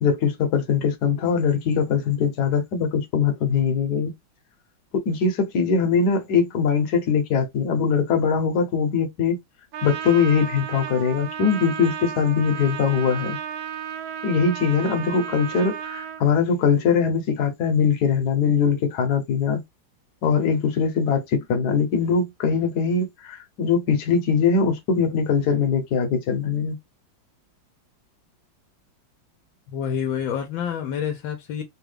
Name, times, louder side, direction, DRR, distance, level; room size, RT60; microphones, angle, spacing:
voice 1, 0.0-4.1 4.9-9.4 9.8-13.4 14.2-19.6 20.2-26.8, left 6 dB, 60° left, 1.3 m, -22 dB
Trumpet, 9.7-16.2, right 9 dB, 90° right, 1.4 m, -33 dB
voice 2, 29.7-31.6, left 8 dB, 90° left, 1.4 m, -28 dB
3.6 x 2.3 x 3.3 m
omnidirectional pair, 2.1 m